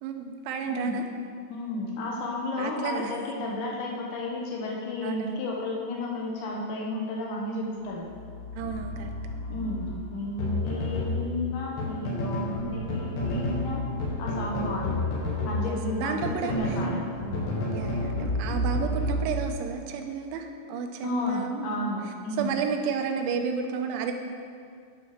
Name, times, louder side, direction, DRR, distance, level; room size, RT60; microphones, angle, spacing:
voice 1, 0.0-1.0 2.6-3.1 5.0-5.4 8.5-9.1 12.6-13.0 15.6-16.5 17.7-21.9 22.4-24.1, right 6 dB, 85° right, 5 dB, 3.1 m, -32 dB
voice 2, 1.5-8.1 9.5-13.8 14.2-15.1 15.4-17.1 21.0-22.6, left 2 dB, 75° left, -2 dB, 2.5 m, -33 dB
sound 1, 7.8-19.9, left 1 dB, 55° left, 2.4 m, -37 dB
sound 2, 10.4-12.5 12.9-13.7 14.0-17.0 17.3-19.8, left 1 dB, 90° left, 4.1 m, -30 dB
9.9 x 6.1 x 4.9 m, 2.2 s
omnidirectional pair, 5.5 m